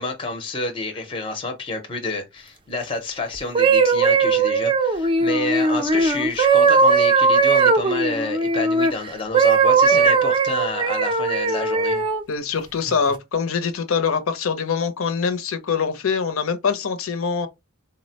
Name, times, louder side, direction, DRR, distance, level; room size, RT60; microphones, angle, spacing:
voice 1, 0.0-12.0, left 3 dB, 25° left, 0.5 m, -29 dB
sound 1, 3.4-8.9 9.3-12.2 12.9-13.1, right 4 dB, 25° right, 0.4 m, -18 dB
voice 2, 12.3-17.5, left 6 dB, 75° left, 0.6 m, -24 dB
3.7 x 2.0 x 2.7 m
head